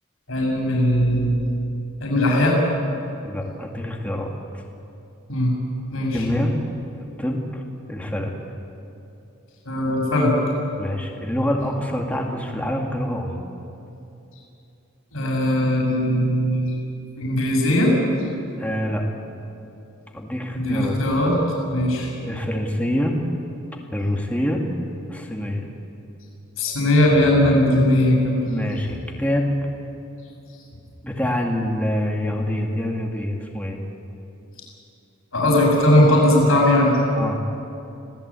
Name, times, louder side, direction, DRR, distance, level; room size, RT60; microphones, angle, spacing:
voice 1, 0.3-1.5 2.0-2.6 5.3-5.6 5.9-6.2 9.6-10.3 15.1-16.8 17.2-17.9 20.5-21.4 21.7-22.1 26.6-28.5 35.3-36.9, left 1 dB, 90° left, -2 dB, 6.2 m, -19 dB
voice 2, 3.2-4.6 6.1-6.5 7.2-7.6 7.9-8.3 10.8-13.4 18.6-19.0 20.1-21.0 21.9-23.2 23.9-24.6 25.1-25.7 28.5-29.5 31.0-33.8 37.1-37.4, left 1 dB, 5° left, 0 dB, 2.1 m, -26 dB
26.0 x 17.5 x 8.4 m, 2.8 s
head